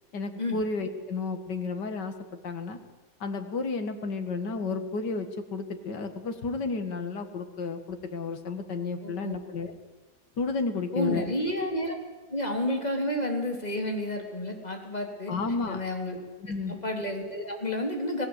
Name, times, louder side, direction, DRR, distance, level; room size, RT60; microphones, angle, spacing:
voice 1, 0.1-2.1 2.4-2.8 3.2-9.8 10.4-11.3 15.3-15.8 16.4-16.8, left 4 dB, 90° left, 7 dB, 2.4 m, -32 dB
voice 2, 9.0-9.4 10.9-12.0 12.3-15.3 15.7-16.2 16.7-18.3, left 1 dB, 25° left, 3 dB, 3.7 m, -30 dB
26.5 x 18.5 x 8.2 m, 1.2 s
omnidirectional pair, 1.8 m